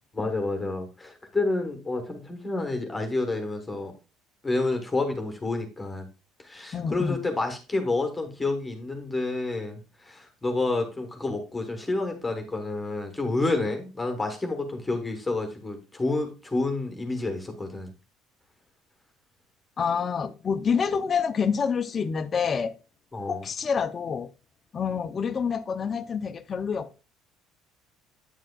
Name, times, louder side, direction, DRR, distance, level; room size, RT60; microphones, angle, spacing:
voice 1, 0.1-3.9 4.4-6.1 6.4-17.9 23.1-23.4, left 2 dB, 10° left, 1.0 m, -29 dB
voice 2, 6.7-7.2 19.8-22.7 23.3-24.3 24.7-27.0, left 6 dB, 25° left, 0.4 m, -27 dB
8.8 x 7.4 x 2.2 m
cardioid pair, 165°, 0 cm